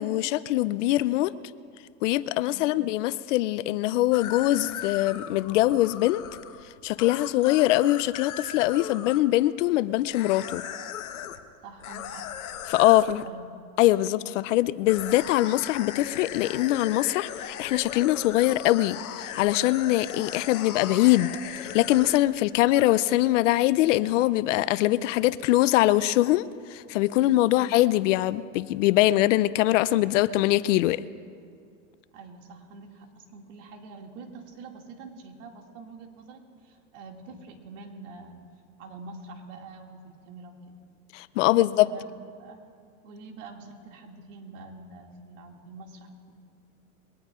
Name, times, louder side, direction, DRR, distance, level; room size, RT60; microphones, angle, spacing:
voice 1, 0.0-1.3 2.0-6.2 6.8-10.6 12.7-13.2 13.8-26.4 26.7-31.0 41.1-41.9, left 16 dB, 60° left, 17 dB, 0.5 m, -23 dB
voice 2, 2.4-2.7 11.6-12.3 12.9-13.5 20.1-20.2 27.4-27.7 32.1-38.4 38.8-40.8 41.5-42.6 43.0-46.4, right 3 dB, 60° right, 2 dB, 2.4 m, -46 dB
sound 1, 4.1-9.2 10.1-11.4 11.8-13.1 14.9-22.4 22.8-22.9, left 10 dB, 85° left, 1.1 m, -38 dB
22.5 x 19.0 x 2.5 m, 2.2 s
hypercardioid pair, 120°, 42 cm